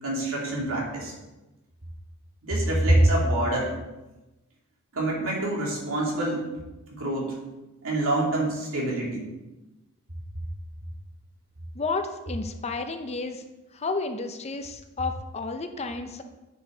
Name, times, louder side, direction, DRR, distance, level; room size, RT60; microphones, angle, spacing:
voice 1, 0.0-1.1 2.4-3.7 4.9-6.4 6.9-7.3 7.8-9.2, right 1 dB, 70° right, -3 dB, 2.7 m, -25 dB
voice 2, 11.7-13.4 13.7-16.2, left 3 dB, 30° left, 7 dB, 0.6 m, -31 dB
9.8 x 6.9 x 3.9 m, 1.1 s
head